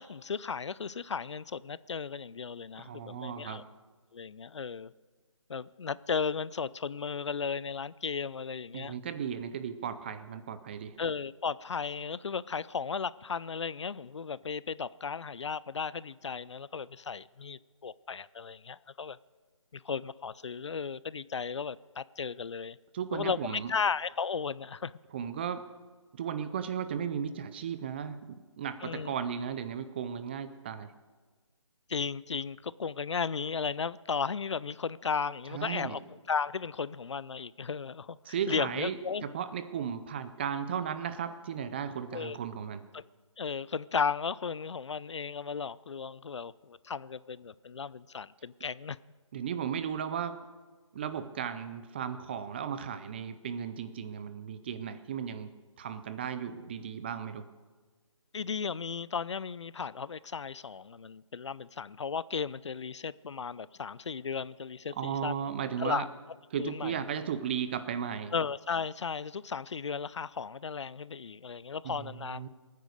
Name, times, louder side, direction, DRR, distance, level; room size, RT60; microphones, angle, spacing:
voice 1, 0.0-3.6 4.1-4.9 5.5-9.0 11.0-19.2 19.7-22.8 23.1-24.9 28.8-29.1 31.9-36.0 36.3-39.2 42.1-42.4 42.9-43.0 43.4-49.0 58.3-65.3 65.8-66.1 66.6-67.0 68.3-72.4, left 5 dB, 65° left, 0.5 m, -35 dB
voice 2, 2.8-3.6 8.7-11.0 22.9-23.7 25.1-25.7 26.1-30.9 35.5-36.0 38.3-42.8 49.3-50.5 50.9-55.5 55.8-57.5 65.0-66.1 66.5-68.3 71.8-72.5, right 8 dB, 20° right, 0.6 m, -35 dB
21.0 x 9.4 x 6.6 m
figure-of-eight pair, 155°, 16 cm